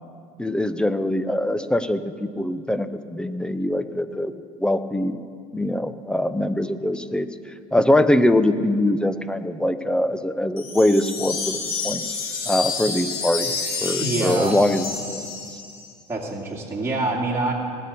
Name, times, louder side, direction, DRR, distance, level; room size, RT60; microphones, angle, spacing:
voice 1, 0.4-4.3 4.6-5.2 5.5-7.3 7.7-11.6 11.8-12.1 12.5-15.2, left 1 dB, 5° left, 12 dB, 0.7 m, -22 dB
sound 1, 10.6-15.9, left 4 dB, 50° left, 2.6 m, -29 dB
voice 2, 14.0-14.6 16.1-17.5, right 2 dB, 15° right, -4 dB, 2.4 m, -25 dB
19.0 x 6.8 x 6.9 m, 2.3 s
hypercardioid pair, 75°, 19 cm